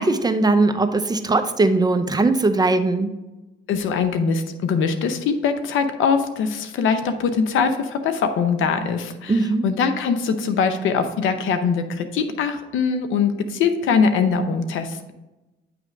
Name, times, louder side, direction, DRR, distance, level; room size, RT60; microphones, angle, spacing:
voice 1, 0.0-3.1 9.3-9.6, right 3 dB, 20° right, 8 dB, 0.6 m, -19 dB
voice 2, 3.7-15.1, left 5 dB, 85° left, 8 dB, 0.7 m, -22 dB
8.5 x 3.2 x 5.1 m, 1.0 s
cardioid pair, 90°, 20 cm